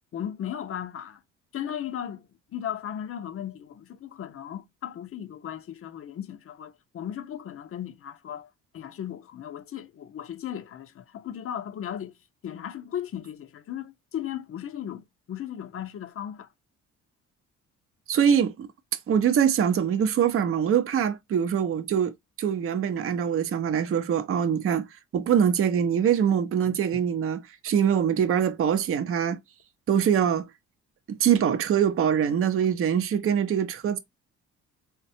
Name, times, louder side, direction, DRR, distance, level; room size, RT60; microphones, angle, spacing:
voice 1, 0.1-1.2 1.5-12.1 12.4-16.5, left 10 dB, 45° left, 0.6 m, -36 dB
voice 2, 18.1-18.7 19.1-24.9 25.1-29.4 29.9-30.5 31.1-34.0, right 8 dB, 45° right, 0.6 m, -23 dB
4.0 x 2.1 x 2.6 m
cardioid pair, 90°, 30 cm